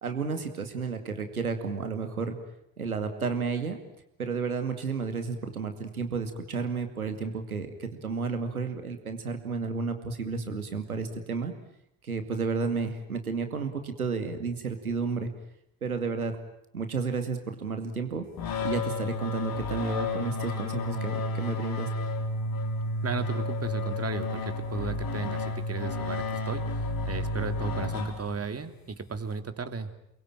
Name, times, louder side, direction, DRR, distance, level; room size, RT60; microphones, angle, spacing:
voice 1, 0.0-2.4 2.8-3.8 4.2-11.5 12.0-15.3 15.8-16.4 16.7-18.3 18.6-21.9, right 4 dB, 90° right, 7 dB, 2.3 m, -32 dB
sound 1, 18.4-28.6, left 2 dB, 55° left, 3.9 m, -31 dB
voice 2, 23.0-29.9, right 4 dB, 35° right, 8 dB, 3.1 m, -35 dB
29.0 x 22.0 x 9.1 m, 0.76 s
figure-of-eight pair, 45°, 42 cm